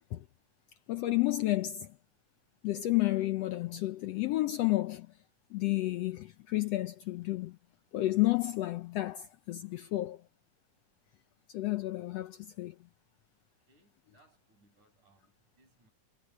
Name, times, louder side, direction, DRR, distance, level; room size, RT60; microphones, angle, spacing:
voice 1, 0.9-1.9 2.6-5.1 5.5-7.6 7.9-10.2 11.5-12.7, left 17 dB, 80° left, 1.5 m, -31 dB
voice 2, 13.7-15.9, right 2 dB, 70° right, 8.7 m, -67 dB
omnidirectional pair, 3.6 m